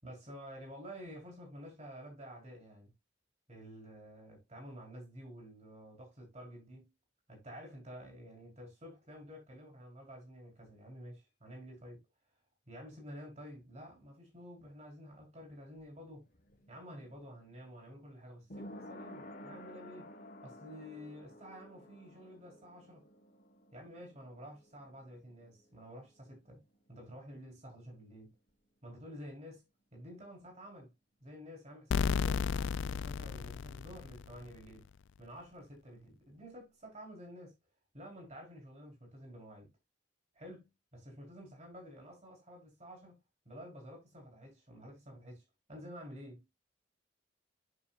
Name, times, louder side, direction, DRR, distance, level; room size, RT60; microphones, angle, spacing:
voice 1, 0.0-2.9 3.5-6.9 7.3-12.0 12.7-16.2 16.7-20.1 20.4-23.1 23.7-26.6 26.9-28.3 28.8-29.6 29.9-30.9 31.2-34.9 35.2-37.5 37.9-39.7 40.3-43.2 43.4-45.4 45.7-46.5, equal, 40° right, 4.7 m, -50 dB
sound 1, 15.5-26.9 27.2-27.3, left 1 dB, 50° left, 1.4 m, -53 dB
sound 2, 31.9-34.6, left 6 dB, 85° left, 0.4 m, -33 dB
9.8 x 6.9 x 2.5 m
head